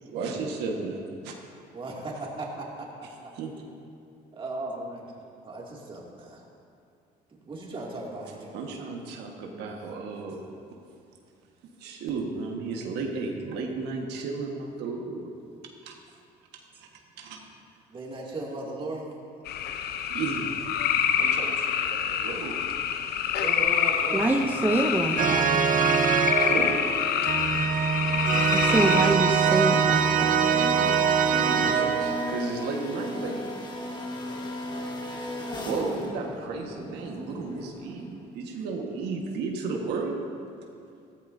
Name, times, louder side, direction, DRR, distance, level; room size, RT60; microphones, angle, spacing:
voice 1, 0.1-1.3 3.3-3.5 8.5-10.6 11.8-15.3 15.8-15.9 16.8-16.9 17.2-17.4 19.8-20.5 20.9-22.6 24.4-24.5 26.2-26.8 27.6-27.7 29.4-29.5 31.1-33.5 35.6-40.2, right 4 dB, 85° right, 1 dB, 1.5 m, -34 dB
voice 2, 1.7-2.9 3.2-3.3 4.4-5.0 5.4-6.4 7.4-8.6 17.9-19.1 23.3-24.3, right 2 dB, 30° right, -3 dB, 2.5 m, -36 dB
sound 1, 19.5-29.2, left 8 dB, 70° left, 0.7 m, -27 dB
voice 3, 24.1-25.7 27.6-27.7 28.5-30.5, right 2 dB, 10° right, 2 dB, 0.7 m, -26 dB
sound 2, 25.2-32.4, right 7 dB, 50° right, 0.7 m, -23 dB
sound 3, 26.5-38.3, left 1 dB, 25° left, 1.6 m, -38 dB
15.0 x 13.5 x 2.7 m, 2.4 s
cardioid pair, 110°, 17 cm